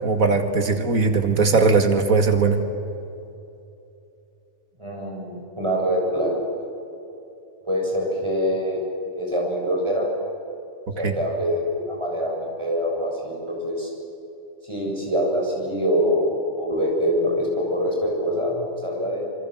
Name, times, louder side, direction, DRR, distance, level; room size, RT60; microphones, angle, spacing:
voice 1, 0.0-2.6 11.0-11.1, right 4 dB, 90° right, 6 dB, 2.6 m, -19 dB
voice 2, 4.8-6.3 7.7-8.8 9.2-10.1 10.9-13.9 14.7-16.3 16.6-19.2, equal, 20° right, -2 dB, 7.7 m, -24 dB
27.5 x 25.5 x 7.9 m, 2.8 s
omnidirectional pair, 1.4 m